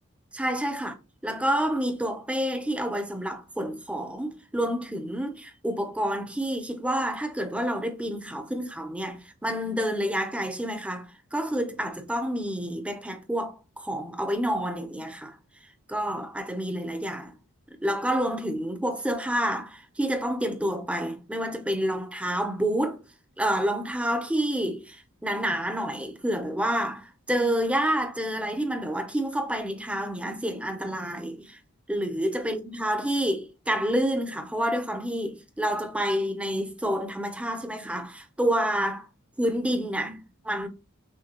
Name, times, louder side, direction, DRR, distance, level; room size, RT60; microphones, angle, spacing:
voice 1, 0.3-0.9 1.2-15.3 15.9-17.3 17.8-23.0 23.4-31.6 31.9-39.0 39.4-40.7, equal, 5° right, 0.6 m, -28 dB
6.3 x 2.2 x 2.9 m
head